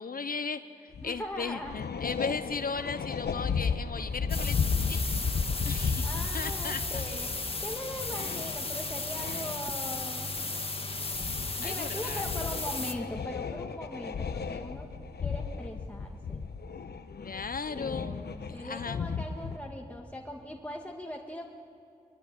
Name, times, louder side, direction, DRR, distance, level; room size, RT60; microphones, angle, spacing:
voice 1, 0.0-4.6 4.9-5.0 5.6-6.0 6.3-7.0 11.6-12.3 17.1-18.2 18.5-19.0, left 5 dB, 65° left, 11 dB, 0.8 m, -36 dB
sound 1, 0.9-1.2 1.5-10.0 10.3-10.7 11.1-11.7 12.1-19.6, left 5 dB, 85° left, 1.0 m, -34 dB
voice 2, 1.0-1.8 6.0-7.3 7.6-10.3 11.6-14.9 15.2-16.4 17.7-21.5, left 1 dB, 10° left, 0 dB, 2.0 m, -40 dB
sound 2, 4.3-12.9, left 3 dB, 35° left, 1.7 m, -35 dB
23.0 x 23.0 x 9.9 m, 2.6 s
wide cardioid pair, 65°, 16 cm